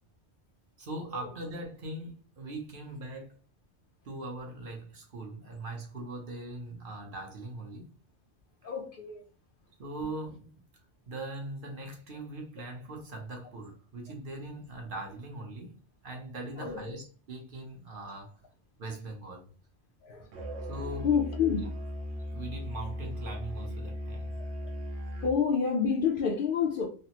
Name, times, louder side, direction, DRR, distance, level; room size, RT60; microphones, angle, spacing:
voice 1, 0.8-3.4 4.0-7.9 9.8-10.5 11.1-15.8 16.0-18.4 18.8-19.5 20.7-21.1 21.6-21.7 22.3-24.3, right 2 dB, 55° right, 0.9 m, -40 dB
voice 2, 8.6-9.2 16.6-16.9 20.0-20.3 21.0-21.6 24.6-24.7 25.2-26.9, left 6 dB, 60° left, 0.6 m, -28 dB
Musical instrument, 20.3-25.5, equal, 90° right, 1.0 m, -37 dB
3.2 x 2.0 x 2.8 m
omnidirectional pair, 1.1 m